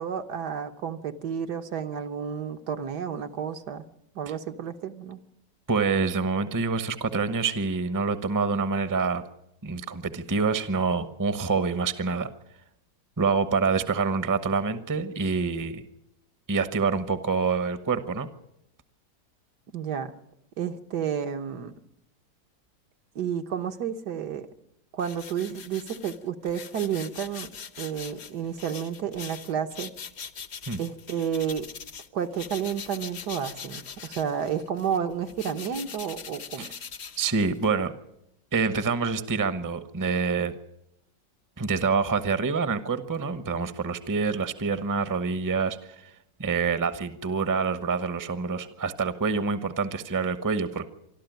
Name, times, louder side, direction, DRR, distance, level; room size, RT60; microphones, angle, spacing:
voice 1, 0.0-3.9 4.1-5.2 19.7-20.1 20.6-21.7 23.1-24.5 24.9-27.5 27.8-29.9 30.8-31.7 32.1-36.7, right 8 dB, 70° right, 6 dB, 1.7 m, -31 dB
voice 2, 5.7-9.2 9.6-12.3 13.2-15.8 16.5-18.3 30.7-30.8 36.6-36.7 37.2-37.9 38.5-40.5 41.6-45.8 46.0-46.1 46.4-50.9, right 4 dB, 15° right, 12 dB, 0.8 m, -26 dB
sound 1, 25.0-32.1 32.3-37.8, left 6 dB, 45° left, 1.0 m, -42 dB
26.0 x 12.5 x 9.3 m, 0.80 s
omnidirectional pair, 1.9 m